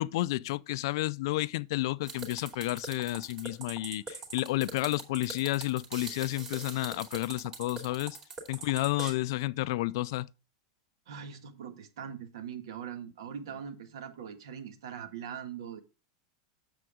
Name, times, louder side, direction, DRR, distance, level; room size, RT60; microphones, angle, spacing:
voice 1, 0.0-8.2 8.5-10.3, left 18 dB, 60° left, 0.4 m, -31 dB
sound 1, 2.0-9.1, right 4 dB, 25° right, 2.4 m, -42 dB
voice 2, 11.1-15.8, right 8 dB, 80° right, 1.7 m, -42 dB
7.7 x 7.1 x 3.6 m
supercardioid pair, 155°, 3 cm